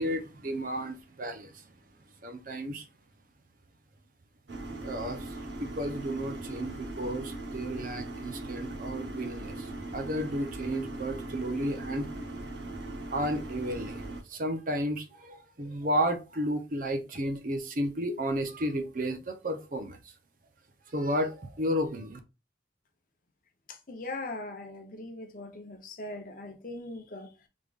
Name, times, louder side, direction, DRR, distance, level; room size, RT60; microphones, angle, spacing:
voice 1, 0.0-1.6 2.2-2.9 4.8-5.3 5.6-12.1 13.1-14.0 14.3-20.0 20.9-22.2, equal, 50° right, 0.6 m, -32 dB
sound 1, 4.5-14.2, right 2 dB, 80° right, 0.9 m, -39 dB
voice 2, 23.7-27.3, left 2 dB, 50° left, 0.8 m, -40 dB
3.6 x 3.4 x 2.3 m
head